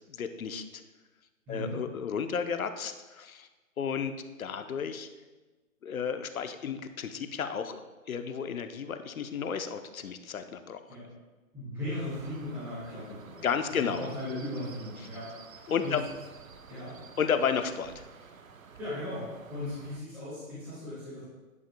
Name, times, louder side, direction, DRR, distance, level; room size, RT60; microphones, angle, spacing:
voice 1, 0.1-0.8 1.5-3.5 3.8-4.1 4.4-5.1 5.8-7.8 8.1-10.8 13.4-14.1 15.7-16.0 17.2-18.0, left 7 dB, 70° left, 8 dB, 0.8 m, -32 dB
voice 2, 1.5-1.8 10.9-11.1 11.5-13.4 13.7-16.0 16.7-16.9 18.8-21.2, left 1 dB, 5° right, -14 dB, 2.1 m, -38 dB
sound 1, 12.1-20.0, right 6 dB, 65° right, 0.8 m, -51 dB
10.5 x 5.8 x 2.2 m, 1.2 s
hypercardioid pair, 175°, 43 cm